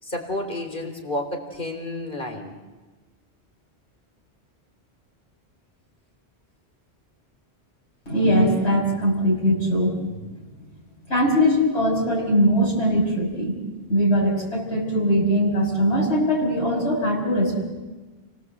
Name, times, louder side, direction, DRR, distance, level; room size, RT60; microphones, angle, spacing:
voice 1, 0.0-2.5, left 1 dB, 50° left, 3 dB, 4.0 m, -30 dB
voice 2, 8.1-9.9 11.1-13.5 13.9-17.6, equal, 75° left, -3 dB, 6.4 m, -21 dB
30.0 x 18.5 x 7.9 m, 1.2 s
omnidirectional pair, 1.1 m